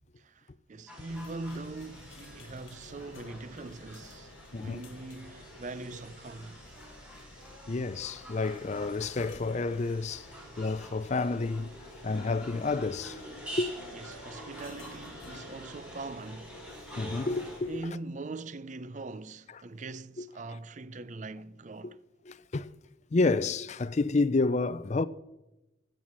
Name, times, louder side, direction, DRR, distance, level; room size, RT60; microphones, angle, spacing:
voice 1, 0.2-6.6 13.9-16.6 17.7-22.0, right 2 dB, 40° right, 0.5 m, -42 dB
sound 1, 0.9-17.6, equal, 5° right, 5.6 m, -47 dB
sound 2, 1.1-17.8, left 2 dB, 90° left, 1.3 m, -53 dB
voice 2, 4.5-4.8 7.7-10.3 10.6-13.9 17.0-17.7 21.8-21.9 22.3-22.7 23.1-25.0, left 3 dB, 35° left, 0.4 m, -30 dB
15.0 x 9.0 x 7.3 m
head